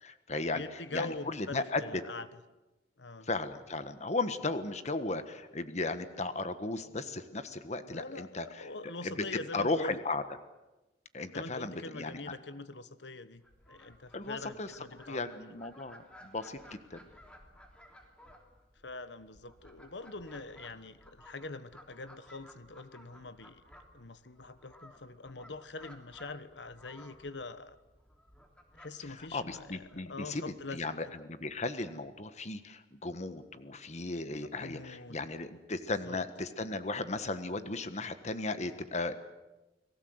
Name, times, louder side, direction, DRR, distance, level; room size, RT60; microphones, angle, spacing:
voice 1, 0.0-1.8 3.2-8.7 9.0-10.2 11.1-12.2 14.1-14.7 15.1-17.0 29.1-30.4 30.7-39.1, left 3 dB, 40° left, 11 dB, 1.5 m, -36 dB
voice 2, 0.5-2.3 3.0-3.3 7.9-10.0 11.3-15.3 18.8-23.6 23.9-27.8 28.8-31.1 34.5-35.2 36.1-36.2, left 3 dB, 85° left, 13 dB, 1.3 m, -44 dB
Fowl, 13.4-30.7, equal, 5° left, 3.1 m, -57 dB
29.5 x 19.5 x 8.0 m, 1.1 s
head